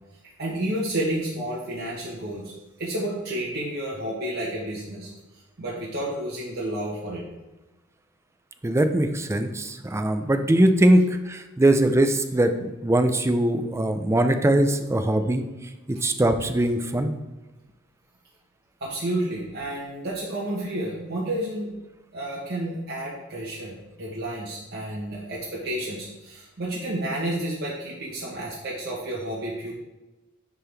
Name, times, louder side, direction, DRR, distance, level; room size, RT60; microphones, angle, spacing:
voice 1, 0.4-5.1 5.6-7.2 18.8-21.7 22.1-29.7, right 1 dB, 50° right, -6 dB, 1.1 m, -31 dB
voice 2, 8.6-15.4 15.9-17.1, right 1 dB, 15° right, 8 dB, 0.4 m, -21 dB
10.0 x 3.7 x 3.4 m, 1.1 s
head